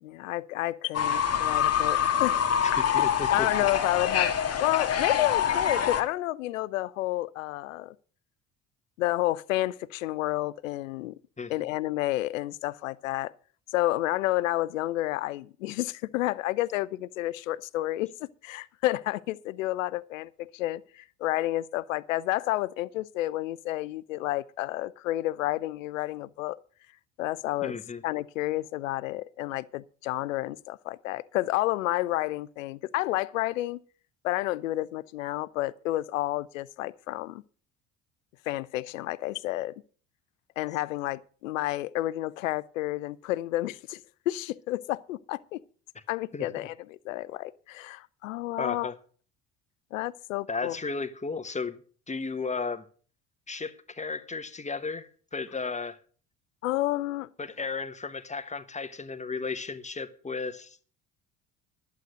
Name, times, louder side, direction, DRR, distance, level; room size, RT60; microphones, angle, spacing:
voice 1, 0.0-2.4 3.3-7.9 9.0-11.1 11.5-13.3 13.7-26.6 27.2-27.8 28.0-33.8 34.2-37.4 38.5-39.7 40.6-44.0 44.3-45.6 46.1-46.7 47.0-48.9 49.9-50.8 56.6-57.3, left 16 dB, 80° left, 0.5 m, -30 dB
Fowl / Bird, 0.9-6.0, left 8 dB, 40° left, 1.7 m, -25 dB
voice 2, 2.6-3.5 11.4-11.5 27.6-28.0 45.9-46.0 46.3-46.5 48.6-49.0 50.5-51.8 52.1-52.8 53.5-56.0 57.4-60.8, left 4 dB, 20° left, 1.2 m, -34 dB
11.5 x 8.2 x 6.4 m
hypercardioid pair, 60°, 39 cm